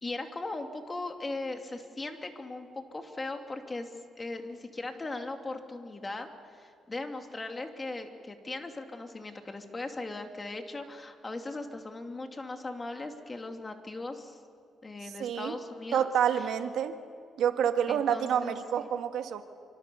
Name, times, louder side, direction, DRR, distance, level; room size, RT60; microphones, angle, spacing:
voice 1, 0.0-14.4 14.8-16.5 17.9-18.9, left 2 dB, 25° left, 4 dB, 2.7 m, -39 dB
voice 2, 15.2-15.5 15.9-16.9 17.4-19.4, right 9 dB, 80° right, 7 dB, 1.8 m, -28 dB
27.5 x 25.5 x 7.0 m, 2.2 s
cardioid pair, 90°, 0 cm